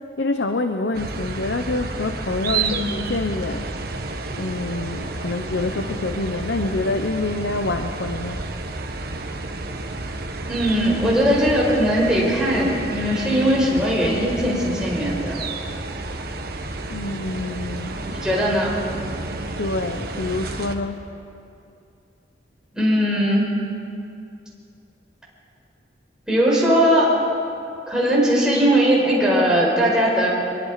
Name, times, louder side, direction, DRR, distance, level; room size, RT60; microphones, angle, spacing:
voice 1, 0.2-3.7 4.4-8.4 16.9-18.0 18.3-18.4 19.6-21.1, left 2 dB, 70° left, 7 dB, 0.9 m, -26 dB
sound 1, 0.9-20.8, right 3 dB, 55° right, 1.4 m, -31 dB
voice 2, 10.5-15.4 18.2-18.8 22.7-23.5 26.3-27.1 27.9-30.3, equal, 5° right, -6 dB, 5.2 m, -19 dB
24.5 x 22.5 x 5.0 m, 2.6 s
head